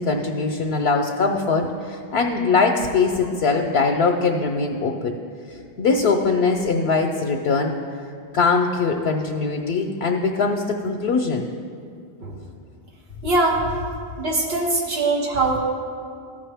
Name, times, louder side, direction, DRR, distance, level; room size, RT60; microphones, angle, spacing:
voice 1, 0.0-5.1 5.8-7.7 8.3-11.5, left 4 dB, 80° left, 3 dB, 0.8 m, -21 dB
voice 2, 13.2-13.6 14.2-15.6, right 3 dB, 90° right, -2 dB, 1.3 m, -21 dB
14.0 x 5.4 x 3.4 m, 2.3 s
omnidirectional pair, 1.0 m